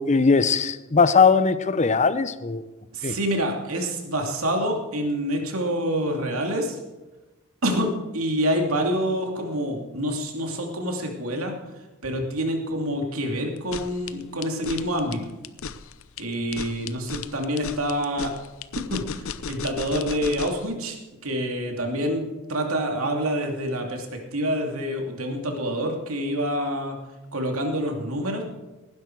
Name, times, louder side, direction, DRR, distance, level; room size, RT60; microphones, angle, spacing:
voice 1, 0.0-2.6 3.0-3.2, left 5 dB, 35° left, 0.7 m, -20 dB
voice 2, 2.9-6.8 7.6-11.5 12.0-15.3 16.2-18.3 18.9-21.0 21.2-22.2 22.5-27.0 27.3-28.4, equal, 75° right, 2.8 m, -27 dB
sound 1, 13.6-20.7, left 6 dB, 70° left, 0.7 m, -35 dB
18.5 x 10.5 x 4.7 m
head